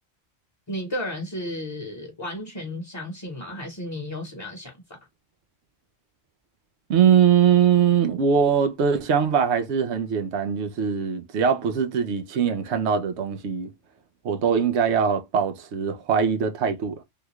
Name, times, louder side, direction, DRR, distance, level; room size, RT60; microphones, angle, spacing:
voice 1, 0.7-4.7, left 1 dB, 25° left, 0.9 m, -33 dB
voice 2, 6.9-13.7 14.2-17.0, right 7 dB, 90° right, 1.0 m, -22 dB
3.6 x 2.3 x 2.9 m
omnidirectional pair, 1.1 m